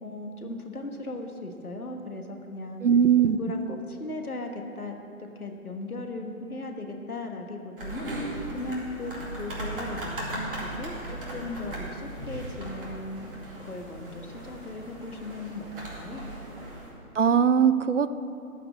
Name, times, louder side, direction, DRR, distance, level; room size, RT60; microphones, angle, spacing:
voice 1, 0.0-2.8 3.2-13.3 13.6-15.6 15.9-16.3, left 2 dB, 80° left, 3 dB, 1.5 m, -37 dB
voice 2, 2.8-3.4 17.1-18.1, right 7 dB, 55° right, 14 dB, 0.5 m, -20 dB
sound 1, 7.8-16.9, right 1 dB, 35° right, 2.3 m, -37 dB
13.5 x 5.0 x 8.2 m, 2.8 s
figure-of-eight pair, 145°, 44 cm